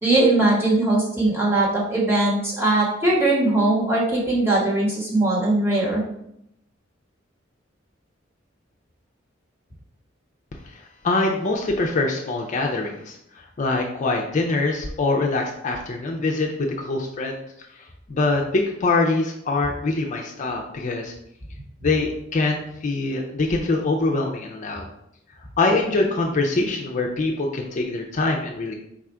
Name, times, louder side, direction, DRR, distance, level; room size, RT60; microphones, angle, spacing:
voice 1, 0.0-6.0, right 2 dB, 10° right, -6 dB, 1.2 m, -20 dB
voice 2, 10.7-17.4 17.8-21.1 21.8-24.8 25.6-28.8, left 3 dB, 40° left, 1 dB, 0.4 m, -24 dB
4.1 x 2.4 x 4.4 m, 0.76 s
head